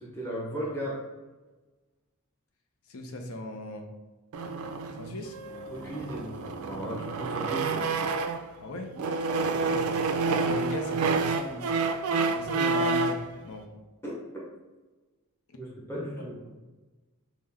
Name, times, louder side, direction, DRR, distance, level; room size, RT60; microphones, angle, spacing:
voice 1, 0.0-1.0 5.7-8.0 9.3-10.1 14.0-14.1 15.6-16.4, equal, 10° left, -6 dB, 0.8 m, -36 dB
voice 2, 2.9-3.9 5.0-5.4 8.6-9.0 9.6-11.7 12.3-13.2 13.4-13.7, left 1 dB, 80° left, 3 dB, 0.6 m, -37 dB
sound 1, 4.3-8.5 8.9-13.3, right 4 dB, 80° right, 0.4 m, -29 dB
5.9 x 2.1 x 3.5 m, 1.2 s
head